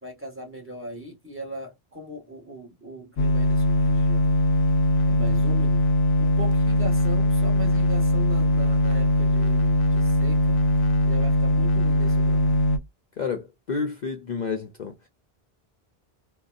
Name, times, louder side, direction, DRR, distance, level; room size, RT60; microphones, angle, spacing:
voice 1, 0.0-4.4 5.1-5.9 6.2-10.6 11.0-12.6, equal, 10° right, 1.2 m, -39 dB
sound 1, 3.2-12.8, left 1 dB, 80° left, 0.9 m, -21 dB
voice 2, 13.2-15.1, left 5 dB, 50° left, 0.6 m, -30 dB
3.8 x 2.3 x 2.4 m
omnidirectional pair, 1.1 m